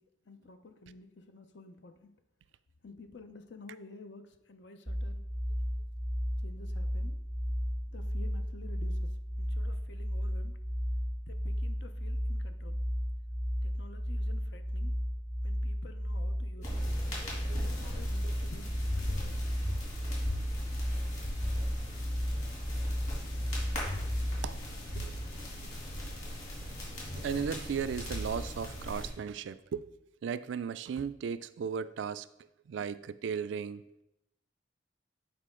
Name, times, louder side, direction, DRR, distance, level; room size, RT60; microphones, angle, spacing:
voice 1, 0.3-2.1 2.8-5.2 6.4-7.2 7.9-9.1 9.4-10.6 11.3-12.8 13.6-14.9 15.4-16.7 17.5-19.5, left 3 dB, 70° left, 8 dB, 0.7 m, -51 dB
sound 1, 4.9-24.5, equal, 10° right, 0.5 m, -34 dB
sound 2, 16.6-29.1, equal, 40° left, 2.6 m, -39 dB
voice 2, 26.9-29.9 30.2-32.3 32.7-33.8, right 6 dB, 75° right, 14 dB, 0.3 m, -36 dB
8.4 x 4.8 x 3.7 m, 0.85 s
head